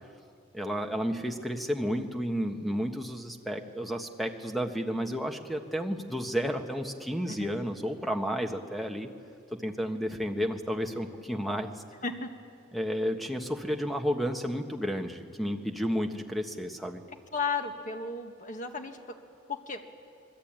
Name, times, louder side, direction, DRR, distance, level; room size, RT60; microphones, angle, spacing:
voice 1, 0.5-9.1 9.6-11.7 12.7-17.0, equal, ahead, 4 dB, 1.4 m, -32 dB
voice 2, 12.0-12.3 17.3-19.2 19.5-19.8, left 4 dB, 40° left, 5 dB, 1.8 m, -34 dB
26.5 x 21.5 x 9.0 m, 2.3 s
head